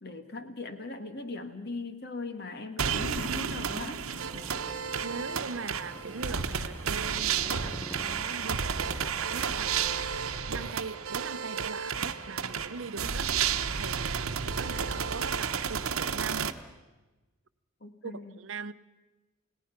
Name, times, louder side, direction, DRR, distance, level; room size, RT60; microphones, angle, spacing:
voice 1, 0.0-4.1 13.0-13.1 17.8-18.4, left 2 dB, 50° left, 7 dB, 1.8 m, -39 dB
sound 1, 2.8-16.5, right 7 dB, 85° right, 1.0 m, -32 dB
sound 2, 4.0-9.9, equal, 10° left, 0.9 m, -47 dB
voice 2, 5.0-10.1 10.5-13.3 13.8-16.6 18.0-18.7, right 4 dB, 65° right, 13 dB, 0.7 m, -41 dB
29.0 x 18.0 x 5.9 m, 1.2 s
head